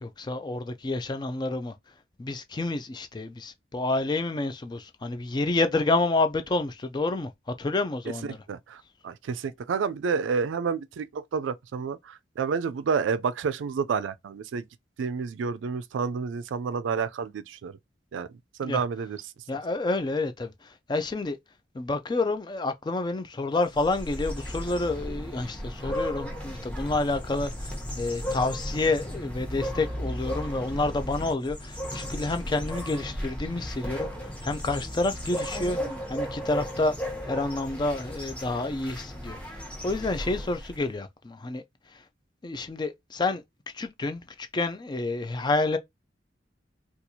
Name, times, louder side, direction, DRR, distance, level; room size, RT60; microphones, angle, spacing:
voice 1, 0.0-1.7 2.2-7.3 7.6-8.4 18.6-18.8 19.5-20.5 20.9-21.4 21.7-34.1 34.4-35.8 36.1-37.0 37.2-41.6 42.4-43.4 43.7-45.8, left 2 dB, 25° left, 0.3 m, -29 dB
voice 2, 8.1-14.7 15.0-17.8 18.1-18.3 18.6-19.2 25.8-26.0, right 5 dB, 75° right, 0.3 m, -30 dB
sound 1, 23.6-40.9, equal, 5° left, 0.9 m, -35 dB
4.3 x 2.3 x 2.7 m
head